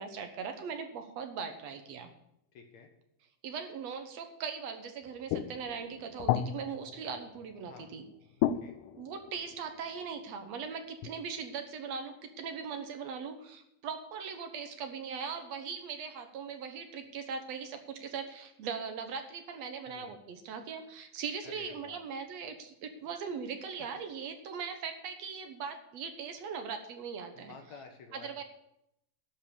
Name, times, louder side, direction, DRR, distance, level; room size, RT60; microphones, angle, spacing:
voice 1, 0.0-2.1 3.4-8.1 9.0-27.6 28.1-28.4, right 6 dB, 65° right, 6 dB, 2.0 m, -40 dB
voice 2, 2.5-2.9 7.7-7.9 8.4-8.7 19.8-20.2 21.4-22.0 23.9-24.0 27.4-28.4, left 5 dB, 65° left, 4 dB, 2.3 m, -51 dB
sound 1, 5.1-8.0 8.4-10.0 11.0-11.1, left 11 dB, 80° left, 2.1 m, -34 dB
12.0 x 5.7 x 8.3 m, 0.79 s
omnidirectional pair, 3.7 m